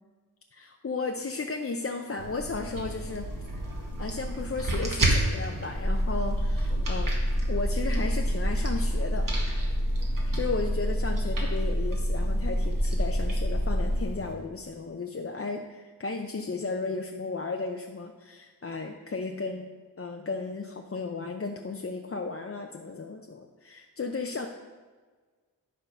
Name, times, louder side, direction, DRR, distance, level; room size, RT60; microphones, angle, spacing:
voice 1, 0.5-3.3 4.0-7.1 7.5-9.3 10.3-19.7 20.0-24.5, left 3 dB, 35° left, 3 dB, 0.6 m, -34 dB
sound 1, 2.2-14.3, right 1 dB, 55° right, 1.6 m, -34 dB
sound 2, 5.7-14.0, equal, ahead, 1.6 m, -27 dB
11.0 x 3.7 x 5.6 m, 1.4 s
wide cardioid pair, 75°, 39 cm